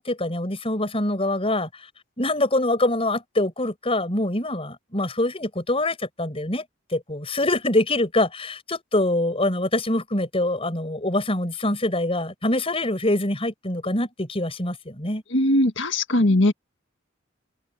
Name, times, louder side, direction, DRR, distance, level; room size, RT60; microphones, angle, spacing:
voice 1, 0.0-1.9 2.2-6.6 6.9-15.2, left 1 dB, 30° left, 6.9 m, -24 dB
voice 2, 15.3-16.5, left 1 dB, 65° left, 1.8 m, -19 dB
head